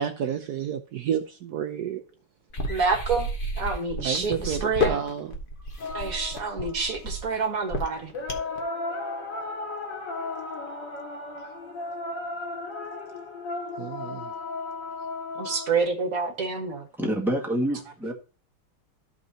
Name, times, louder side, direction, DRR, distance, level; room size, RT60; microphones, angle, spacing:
voice 1, 0.0-2.0 4.0-5.3 13.8-14.3, right 8 dB, 70° right, 1.0 m, -30 dB
sound 1, 2.5-8.6, left 1 dB, 30° left, 1.2 m, -31 dB
voice 2, 2.7-3.3 3.6-5.0 5.9-8.1 15.4-16.9, right 4 dB, 45° right, 1.8 m, -27 dB
sound 2, 5.8-7.2 8.1-15.8, left 3 dB, 60° left, 2.3 m, -35 dB
voice 3, 17.0-18.1, right 1 dB, ahead, 1.6 m, -27 dB
13.5 x 5.3 x 2.8 m
omnidirectional pair, 2.3 m